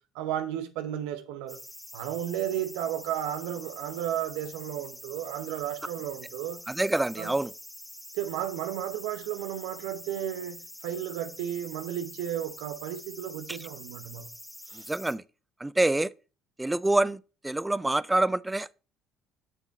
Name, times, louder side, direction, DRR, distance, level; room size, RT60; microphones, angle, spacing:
voice 1, 0.1-1.6 1.9-6.6 7.2-7.3 8.1-14.3 14.7-14.9, right 11 dB, 80° right, 0.8 m, -33 dB
sound 1, 1.5-15.2, left 1 dB, 5° left, 0.8 m, -46 dB
voice 2, 6.7-7.5 13.5-13.6 14.9-15.2 15.6-16.1 16.6-18.7, right 2 dB, 10° right, 0.3 m, -26 dB
6.8 x 6.2 x 4.0 m
supercardioid pair, 75°, 0 cm